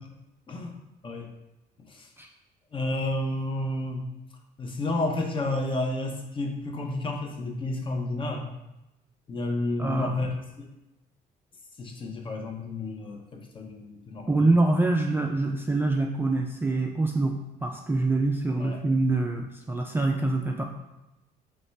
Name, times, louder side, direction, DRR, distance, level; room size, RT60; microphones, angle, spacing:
voice 1, 0.5-1.3 1.8-2.1 2.7-4.1 4.6-8.5 9.3-10.7 11.8-14.6 18.6-18.8, left 2 dB, 30° left, 3 dB, 0.6 m, -31 dB
voice 2, 9.8-10.1 14.3-17.3 17.6-20.6, right 2 dB, 15° right, 1 dB, 0.3 m, -25 dB
4.2 x 3.2 x 3.2 m, 0.95 s
cardioid pair, 110°, 17 cm